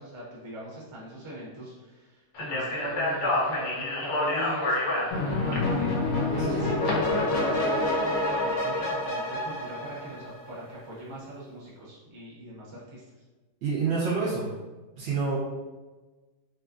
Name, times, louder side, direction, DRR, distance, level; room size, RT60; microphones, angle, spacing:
voice 1, 0.0-5.9 6.3-13.0, right 1 dB, 30° right, -7 dB, 0.6 m, -40 dB
Speech, 2.4-6.9, left 2 dB, 85° left, 1.2 m, -29 dB
sound 1, 5.1-10.6, left 2 dB, 65° left, 1.0 m, -27 dB
voice 2, 13.6-14.5 15.0-15.4, right 5 dB, 60° right, -7 dB, 1.0 m, -28 dB
3.0 x 2.5 x 2.5 m, 1.2 s
omnidirectional pair, 1.8 m